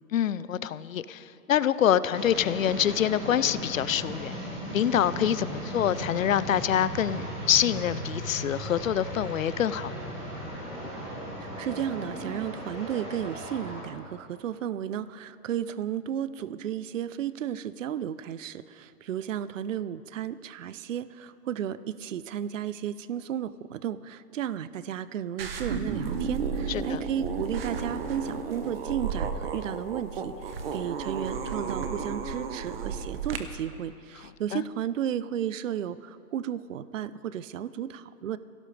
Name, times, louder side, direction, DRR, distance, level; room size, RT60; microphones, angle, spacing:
voice 1, 0.1-4.3 4.7-10.2 26.7-27.0 34.5-34.6, left 10 dB, 55° left, 16 dB, 0.6 m, -26 dB
sound 1, 2.1-13.8, right 1 dB, 15° right, 2.8 m, -37 dB
voice 2, 11.4-38.4, right 9 dB, 55° right, 16 dB, 0.5 m, -33 dB
sound 2, 25.4-33.4, right 5 dB, 40° right, 1.0 m, -33 dB
23.5 x 17.0 x 3.3 m, 2.7 s
hypercardioid pair, 175°, 47 cm